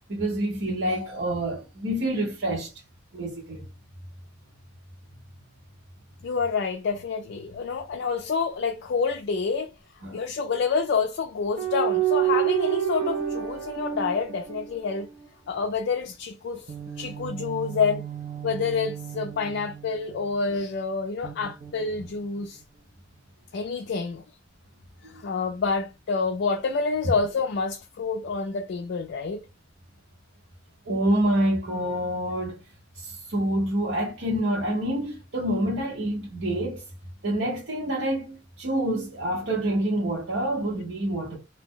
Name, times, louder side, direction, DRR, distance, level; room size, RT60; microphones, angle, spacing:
voice 1, 0.1-2.7 3.1-3.6 10.0-10.2 25.0-25.1 30.9-32.6 33.0-36.8 37.2-41.4, right 1 dB, 75° right, 1.0 m, -27 dB
voice 2, 6.2-9.7 10.0-15.1 15.5-18.0 18.4-22.6 23.5-24.2 25.1-29.4, left 5 dB, 60° left, 0.4 m, -28 dB
sound 1, 11.6-15.2 16.7-20.4 21.2-22.5, right 11 dB, 50° right, 0.5 m, -30 dB
2.6 x 2.1 x 3.7 m
head